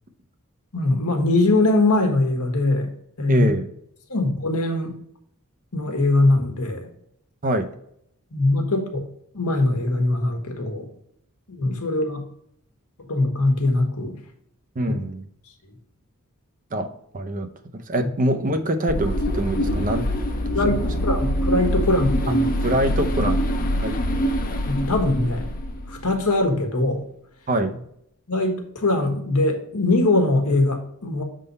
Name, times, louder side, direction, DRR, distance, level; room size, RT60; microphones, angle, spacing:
voice 1, 0.7-2.9 3.2-3.5 4.1-4.9 5.7-6.9 8.3-9.0 9.3-10.9 11.5-12.2 13.0-14.2 20.5-22.5 24.6-25.5 25.9-27.0 28.3-31.2, left 2 dB, 85° left, 3 dB, 1.3 m, -21 dB
voice 2, 3.3-3.7 7.4-7.7 14.8-15.3 16.7-16.9 17.1-17.5 17.7-20.1 22.6-23.4 23.8-24.0 27.5-27.8, right 1 dB, 40° right, 7 dB, 0.6 m, -24 dB
sound 1, 18.9-26.3, equal, 40° left, 0.7 m, -24 dB
6.7 x 3.8 x 4.0 m, 0.73 s
head